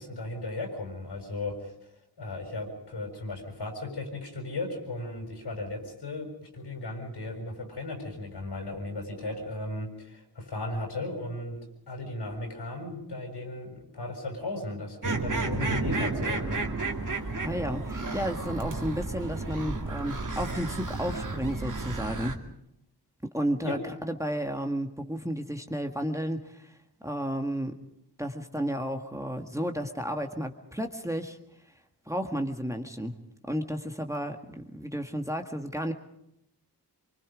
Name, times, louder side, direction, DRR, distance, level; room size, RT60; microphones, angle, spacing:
voice 1, 0.0-1.7 2.2-11.6 11.9-16.6 23.6-23.8, left 2 dB, 80° left, 3 dB, 6.9 m, -36 dB
sound 1, 15.0-22.3, right 3 dB, 50° right, 2.4 m, -32 dB
voice 2, 17.4-22.4 23.3-26.7 27.0-27.8 28.2-31.4 32.1-33.2 33.5-35.9, equal, 5° right, 4 dB, 1.7 m, -32 dB
25.0 x 24.0 x 5.2 m, 0.78 s
wide cardioid pair, 70°, 41 cm